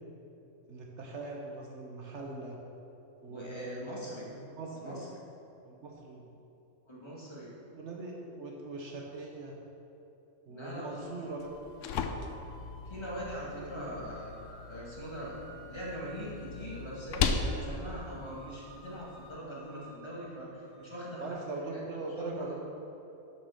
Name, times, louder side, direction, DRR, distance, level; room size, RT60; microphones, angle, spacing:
voice 1, 0.7-2.6 3.2-5.0 5.6-6.2 7.7-9.6 10.5-11.5 11.9-12.2 13.5-14.0 21.2-22.5, right 3 dB, 65° right, 0 dB, 1.1 m, -41 dB
voice 2, 3.3-4.3 4.7-5.1 6.9-7.5 10.5-10.9 12.8-14.3 14.7-21.3 21.7-21.8 22.2-22.5, equal, 20° left, -6 dB, 1.9 m, -42 dB
sound 1, 10.7-21.3, right 1 dB, 5° left, 2.0 m, -55 dB
sound 2, 11.4-19.4, left 5 dB, 80° left, 0.9 m, -37 dB
7.2 x 5.9 x 6.3 m, 2.9 s
omnidirectional pair, 1.3 m